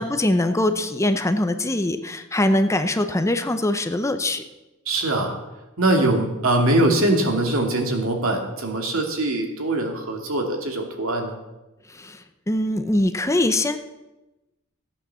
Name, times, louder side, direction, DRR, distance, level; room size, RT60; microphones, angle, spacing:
voice 1, 0.0-4.4 11.9-13.8, left 1 dB, 15° left, 9 dB, 0.7 m, -22 dB
voice 2, 4.9-5.4 5.8-11.4, right 1 dB, 80° right, 2 dB, 2.5 m, -22 dB
15.0 x 8.6 x 7.0 m, 1.0 s
head